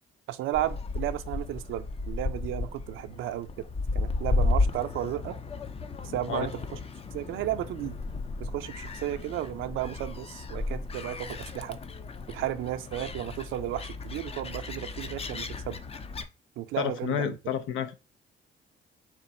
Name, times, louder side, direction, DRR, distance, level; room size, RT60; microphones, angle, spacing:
voice 1, 0.3-3.7 3.9-5.4 6.0-6.8 7.1-8.0 8.4-11.8 12.3-15.8 16.6-17.4, right 13 dB, 90° right, 0.5 m, -33 dB
Gull seagull, 0.5-16.2, left 3 dB, 30° left, 0.5 m, -34 dB
voice 2, 16.8-17.9, left 8 dB, 85° left, 0.6 m, -30 dB
3.8 x 2.5 x 4.1 m
cardioid pair, 90°, 20 cm